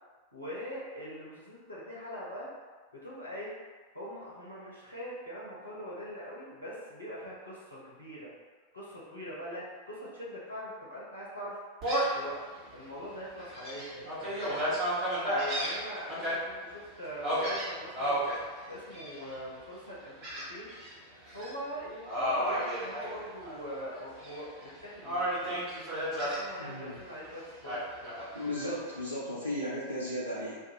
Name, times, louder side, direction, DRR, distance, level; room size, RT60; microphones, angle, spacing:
voice 1, 0.3-2.5 2.9-3.5 3.9-8.3 8.7-11.6 12.1-12.4 12.7-14.8 15.3-18.2 18.7-20.7 21.3-25.7 26.2-28.1 28.6-28.7, equal, 85° left, -7 dB, 0.7 m, -42 dB
Gull seagull, 11.8-12.2 12.8-12.9 13.4-16.3 17.2-18.4 18.9-19.4 20.2-20.9 21.3-21.5 22.1-23.6 23.9-24.7 25.0-26.4 27.6-28.7, equal, 35° right, 1.2 m, -32 dB
voice 2, 26.6-27.0 28.3-30.6, left 1 dB, 90° right, -8 dB, 0.4 m, -35 dB
2.4 x 2.2 x 2.9 m, 1.4 s
figure-of-eight pair, 90°, 0 cm